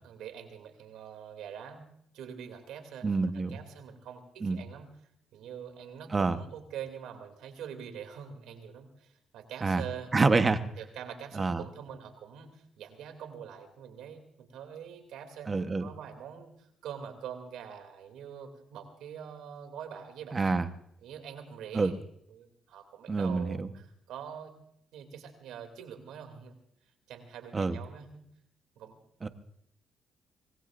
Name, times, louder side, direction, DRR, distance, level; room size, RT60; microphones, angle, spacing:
voice 1, 0.0-3.1 3.3-4.9 5.3-10.1 10.3-10.5 10.8-20.6 21.0-21.9 22.3-24.5 24.9-26.5 27.1-28.2 28.8-29.0, right 8 dB, 85° right, 6 dB, 2.7 m, -44 dB
voice 2, 3.0-3.6 4.4-4.6 6.1-6.4 9.6-9.8 10.1-10.6 11.3-11.6 15.5-15.8 20.3-20.7 21.7-21.9 23.1-23.7 27.5-27.7 29.2-29.3, right 3 dB, 30° right, 9 dB, 1.1 m, -27 dB
25.0 x 19.0 x 2.6 m, 0.70 s
cardioid pair, 90°, 0 cm